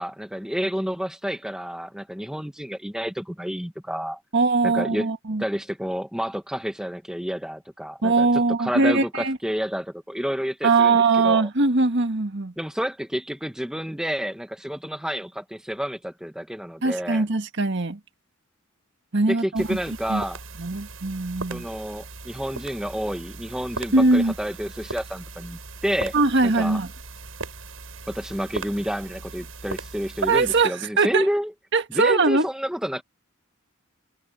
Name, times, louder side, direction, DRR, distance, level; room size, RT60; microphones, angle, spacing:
voice 1, 0.0-4.2 4.6-5.1 5.4-11.5 12.6-17.2 19.3-20.4 21.5-26.1 26.4-26.8 28.1-31.5 31.9-33.0, equal, 5° right, 1.1 m, -29 dB
voice 2, 4.3-5.4 8.0-9.4 10.6-12.5 16.8-18.0 19.1-19.8 20.1-20.2 20.6-21.7 23.9-24.3 26.1-26.9 30.2-31.3 31.7-32.5, right 3 dB, 60° right, 1.8 m, -21 dB
sound 1, 19.6-30.6, right 3 dB, 80° right, 6.4 m, -39 dB
head